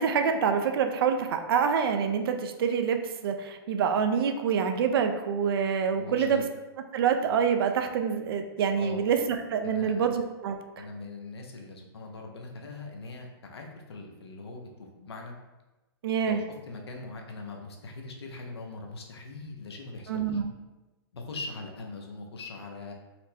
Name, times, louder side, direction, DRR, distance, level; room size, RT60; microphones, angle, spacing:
voice 1, 0.0-6.4 6.9-10.8 16.0-16.4 20.1-20.5, right 6 dB, 65° right, 6 dB, 0.4 m, -26 dB
voice 2, 6.0-6.4 8.8-9.0 9.6-10.0 10.8-15.3 16.2-20.2 21.1-22.9, left 3 dB, 90° left, 2 dB, 0.6 m, -41 dB
4.2 x 2.0 x 2.7 m, 1.1 s
hypercardioid pair, 135°, 13 cm